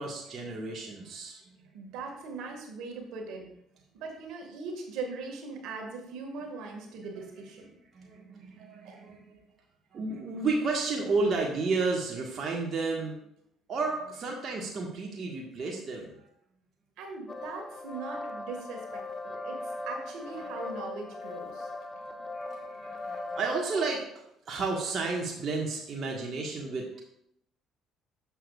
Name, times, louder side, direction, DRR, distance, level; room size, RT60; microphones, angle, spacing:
voice 1, 0.0-1.5 7.9-9.4 9.9-13.2 13.7-16.2 22.2-24.0 24.4-27.0, right 3 dB, 50° right, -1 dB, 1.5 m, -32 dB
voice 2, 1.7-3.5 3.9-7.7 8.8-9.0 17.0-21.7, right 4 dB, 70° right, 2 dB, 1.8 m, -40 dB
sound 1, 17.3-23.9, left 2 dB, 35° left, 1.0 m, -39 dB
11.0 x 7.1 x 2.4 m, 0.75 s
hypercardioid pair, 60°, 0 cm